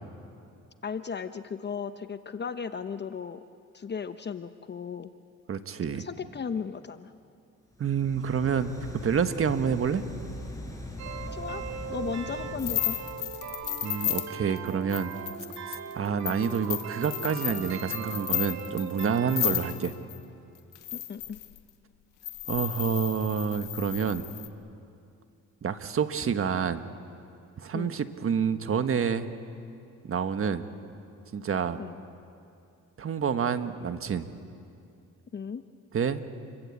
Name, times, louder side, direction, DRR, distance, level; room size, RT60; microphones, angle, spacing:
voice 1, 0.8-3.4 3.7-5.1 6.0-7.1 11.3-11.6 11.9-13.0 20.9-21.4 27.7-27.9 31.8-32.0 35.3-35.6, left 6 dB, 35° left, 10 dB, 0.9 m, -35 dB
voice 2, 5.5-6.0 7.8-10.0 13.8-15.1 15.7-19.9 22.5-24.3 25.6-26.9 27.6-29.3 30.0-30.7 31.3-31.8 33.0-34.3 35.9-36.2, right 7 dB, 45° right, 9 dB, 1.4 m, -28 dB
sound 1, 7.7-13.5, left 1 dB, 10° left, 5.5 m, -41 dB
sound 2, 11.0-19.7, right 7 dB, 60° right, 2.7 m, -39 dB
sound 3, 12.6-20.2 20.7-21.6 22.2-24.5, left 14 dB, 85° left, 1.6 m, -33 dB
29.0 x 23.0 x 8.5 m, 2.5 s
cardioid pair, 90°, 30 cm